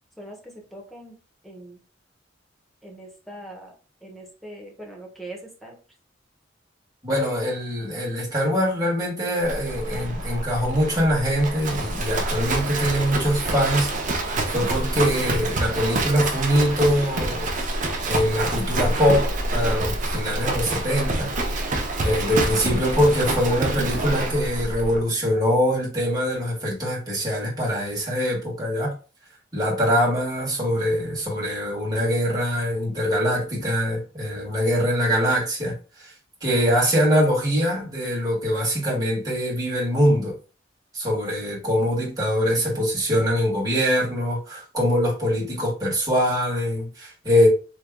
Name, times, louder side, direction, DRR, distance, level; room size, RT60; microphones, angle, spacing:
voice 1, 0.2-1.2 1.4-1.8 2.8-3.7 4.0-5.8, right 1 dB, ahead, 0.9 m, -41 dB
voice 2, 7.0-13.9 14.2-17.5 18.1-21.3 22.0-28.9 29.5-36.1 36.4-40.3 40.9-47.5, equal, 20° right, 1.7 m, -23 dB
Livestock farm animals working animals, 9.4-25.0, right 2 dB, 45° right, 0.6 m, -27 dB
3.5 x 3.3 x 2.2 m
head